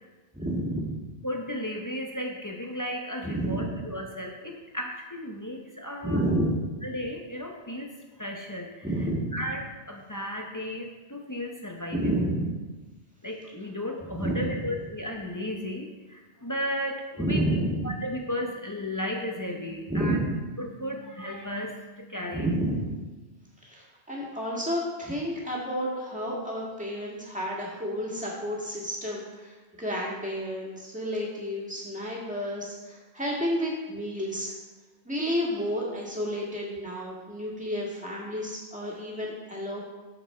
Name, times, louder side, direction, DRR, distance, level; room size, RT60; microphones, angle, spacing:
voice 1, 0.3-1.0 3.2-3.7 6.0-6.7 8.8-9.4 11.9-12.6 14.2-14.6 17.2-17.9 19.9-20.4 22.3-22.9 23.6-34.5 35.1-39.8, equal, 5° right, -5 dB, 1.8 m, -30 dB
voice 2, 1.2-6.2 6.8-7.9 8.2-8.8 9.3-12.1 13.2-17.5 17.8-20.2 20.6-22.5, equal, 20° left, 0 dB, 0.6 m, -34 dB
6.9 x 6.4 x 4.3 m, 1.2 s
omnidirectional pair, 1.1 m